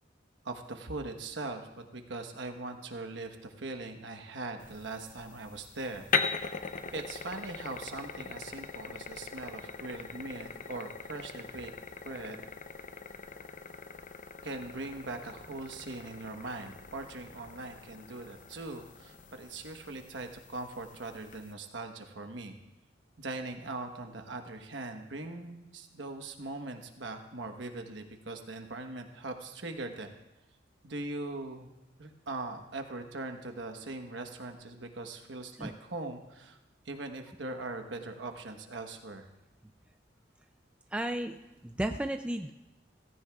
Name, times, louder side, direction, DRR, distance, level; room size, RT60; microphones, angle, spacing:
voice 1, 0.4-6.5 6.9-11.7 12.0-12.4 14.4-22.5 23.2-30.1 30.8-31.7 32.0-36.6 36.8-39.3, right 2 dB, 75° right, 5 dB, 1.2 m, -41 dB
sound 1, 4.6-21.5, left 5 dB, 45° left, 0.6 m, -40 dB
voice 2, 40.9-41.4 41.6-42.5, right 1 dB, 5° right, 6 dB, 0.3 m, -33 dB
17.0 x 15.5 x 2.4 m, 1.0 s
head